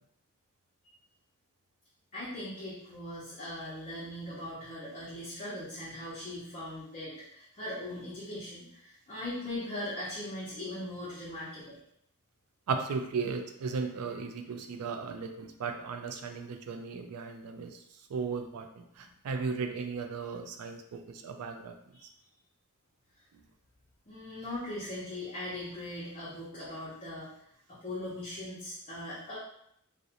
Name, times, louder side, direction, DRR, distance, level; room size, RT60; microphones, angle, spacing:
voice 1, 2.1-11.8 19.0-19.1 21.9-22.0 24.1-27.3 27.7-29.4, left 1 dB, 35° left, -10 dB, 0.6 m, -40 dB
voice 2, 12.7-17.8 18.1-21.7, right 5 dB, 80° right, 6 dB, 0.4 m, -36 dB
2.4 x 2.0 x 2.8 m, 0.73 s
head